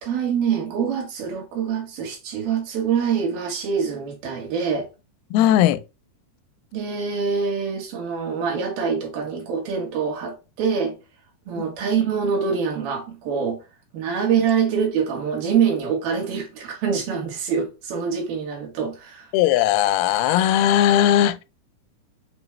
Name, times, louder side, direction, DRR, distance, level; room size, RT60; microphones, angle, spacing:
voice 1, 0.0-4.9 6.7-11.0 11.5-13.6 13.9-19.3, right 6 dB, 75° right, 3.1 m, -25 dB
voice 2, 5.3-5.8 19.3-21.4, left 11 dB, 85° left, 2.4 m, -18 dB
6.9 x 2.4 x 3.1 m
omnidirectional pair, 4.4 m